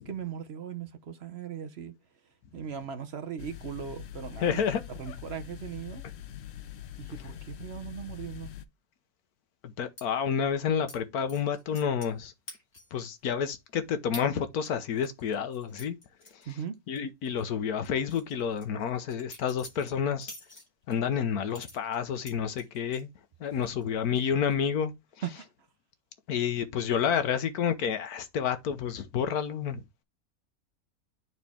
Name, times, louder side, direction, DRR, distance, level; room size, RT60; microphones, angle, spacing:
voice 1, 0.0-1.9 2.5-4.6 4.9-6.0 7.0-8.5 16.5-16.8 23.5-23.6 25.2-25.5, right 8 dB, 55° right, 0.9 m, -38 dB
sound 1, 3.4-8.6, left 11 dB, 60° left, 0.7 m, -43 dB
voice 2, 4.4-4.8 5.1-5.2 9.6-12.3 12.9-16.0 16.9-20.3 20.9-23.1 23.4-24.9 26.3-30.0, left 7 dB, 90° left, 1.4 m, -29 dB
sound 2, 10.0-10.1 10.9-11.0 11.3-12.2 12.5-13.0 13.4-13.5 14.1-14.3 14.7-17.0 17.2-17.4 17.8-21.0 21.5-23.0 23.4-23.9 24.1-24.5, left 1 dB, 30° left, 2.7 m, -47 dB
9.3 x 4.2 x 3.5 m
omnidirectional pair, 1.5 m